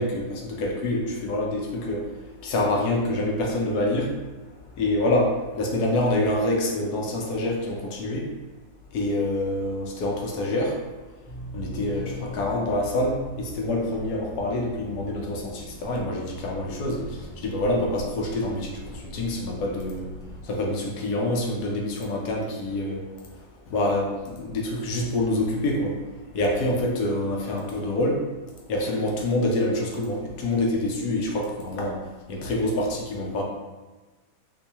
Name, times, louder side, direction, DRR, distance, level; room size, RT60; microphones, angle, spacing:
voice 1, 0.0-2.1 2.4-4.2 4.8-8.3 8.9-10.8 11.5-20.1 20.4-23.1 23.7-26.0 26.3-28.2 28.7-33.4, left 1 dB, 70° left, -1 dB, 1.0 m, -26 dB
sound 1, 11.2-20.4, left 1 dB, 45° left, 0.8 m, -41 dB
3.8 x 2.6 x 2.8 m, 1.2 s
omnidirectional pair, 2.0 m